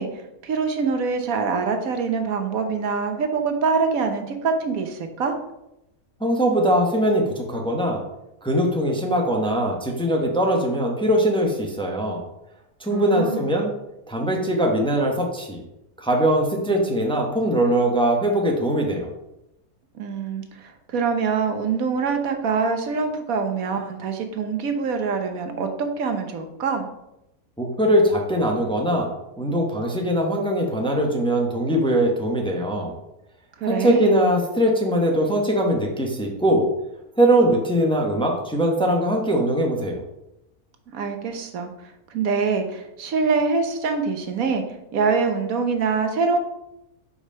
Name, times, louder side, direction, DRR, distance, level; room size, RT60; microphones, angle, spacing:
voice 1, 0.0-5.3 12.9-13.5 19.9-26.9 33.6-34.2 40.9-41.7 42.1-44.6 44.9-46.4, right 5 dB, 70° right, 6 dB, 1.3 m, -24 dB
voice 2, 6.2-8.0 8.4-12.2 12.8-13.7 14.1-15.6 16.0-19.1 27.6-29.1 29.4-32.9 33.6-36.7 37.2-40.0, right 1 dB, 5° left, 0 dB, 0.8 m, -21 dB
5.3 x 4.7 x 5.5 m, 0.87 s
omnidirectional pair, 1.5 m